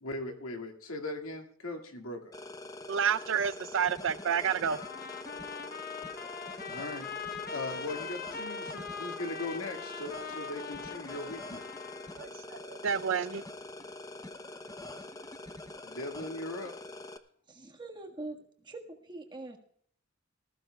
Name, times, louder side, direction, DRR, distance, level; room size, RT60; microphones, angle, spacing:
voice 1, 0.0-2.3 6.7-7.1 7.5-11.6 15.8-16.7, left 2 dB, 80° left, 4 dB, 2.0 m, -39 dB
sound 1, 2.3-17.2, left 2 dB, 15° left, 0.6 m, -45 dB
voice 2, 2.9-4.8 12.2-13.4, right 7 dB, 65° right, 13 dB, 0.5 m, -30 dB
Trumpet, 4.7-12.2, left 5 dB, 45° left, 0.8 m, -42 dB
voice 3, 17.5-19.6, right 2 dB, 20° right, 2 dB, 1.5 m, -43 dB
19.5 x 15.0 x 2.3 m, 0.63 s
head